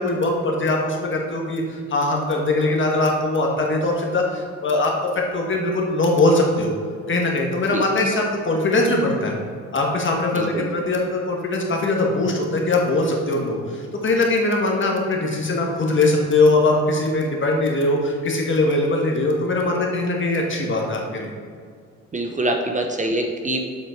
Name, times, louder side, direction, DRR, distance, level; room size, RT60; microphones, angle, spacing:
voice 1, 0.0-6.7 7.1-9.3 9.7-21.3, left 2 dB, 40° left, 0 dB, 1.6 m, -21 dB
voice 2, 10.3-10.7 22.1-23.6, right 1 dB, 25° right, 3 dB, 0.8 m, -24 dB
7.5 x 6.1 x 4.5 m, 2.2 s
cardioid pair, 90°, 30 cm